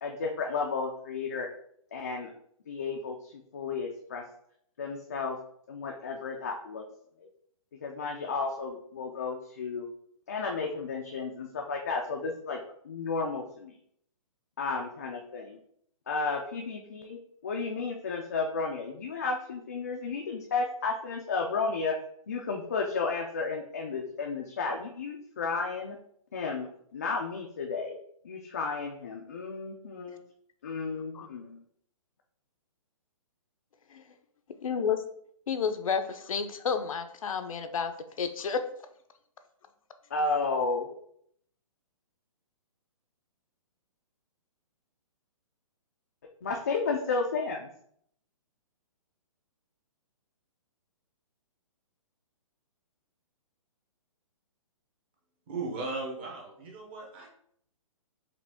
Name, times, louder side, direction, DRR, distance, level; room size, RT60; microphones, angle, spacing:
voice 1, 0.0-1.5 1.9-2.3 2.7-4.2 4.8-5.4 5.7-6.8 7.8-9.9 10.3-12.6 12.8-13.7 14.6-15.6 16.1-22.0 22.3-26.0 26.3-28.0 28.2-30.2 30.6-31.6 40.1-40.9 46.4-47.7, left 4 dB, 30° left, 1 dB, 0.3 m, -33 dB
voice 2, 34.6-35.0 35.5-38.6, left 6 dB, 70° left, 8 dB, 0.6 m, -31 dB
voice 3, 55.5-57.3, right 3 dB, 20° right, 0 dB, 0.6 m, -37 dB
4.9 x 3.0 x 3.4 m, 0.68 s
hypercardioid pair, 175°, 18 cm